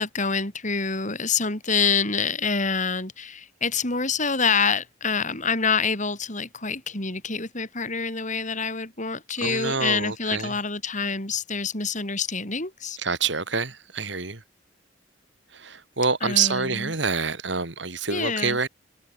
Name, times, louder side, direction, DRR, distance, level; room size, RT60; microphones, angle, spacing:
voice 1, 0.0-13.0 16.2-16.9 18.1-18.6, left 5 dB, 40° left, 5.9 m, -26 dB
voice 2, 9.4-10.6 13.0-14.4 15.5-18.7, right 5 dB, 65° right, 3.8 m, -27 dB
head